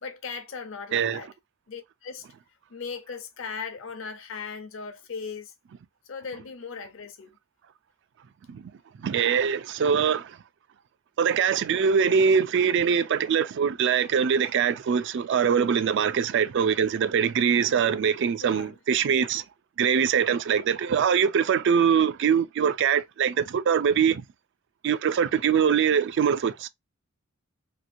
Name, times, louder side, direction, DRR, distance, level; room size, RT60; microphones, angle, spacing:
voice 1, 0.0-1.3 1.7-2.3 2.7-5.5 6.1-7.4 18.4-18.8, left 5 dB, 70° left, 0.7 m, -38 dB
voice 2, 9.0-10.4 11.2-19.4 19.8-24.2 24.8-26.7, right 7 dB, 60° right, 0.4 m, -23 dB
3.0 x 2.9 x 2.5 m
head